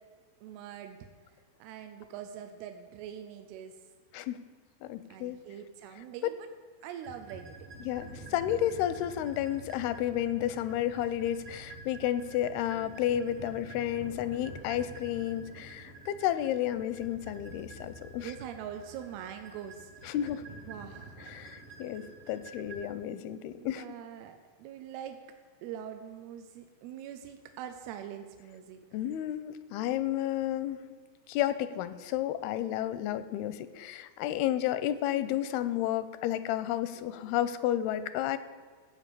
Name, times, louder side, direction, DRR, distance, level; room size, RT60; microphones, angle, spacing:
voice 1, 0.4-1.0 1.6-3.7 5.1-6.5 6.8-7.6 18.2-19.9 20.7-21.2 23.6-25.2 25.6-28.8, right 9 dB, 85° right, 7 dB, 2.7 m, -43 dB
voice 2, 4.8-5.4 7.9-18.3 20.0-20.4 21.2-23.8 28.9-30.8 31.3-38.4, left 12 dB, 85° left, 13 dB, 2.5 m, -32 dB
sound 1, 7.0-22.9, right 2 dB, 55° right, 1.7 m, -48 dB
15.0 x 5.2 x 8.2 m, 1.5 s
omnidirectional pair, 4.4 m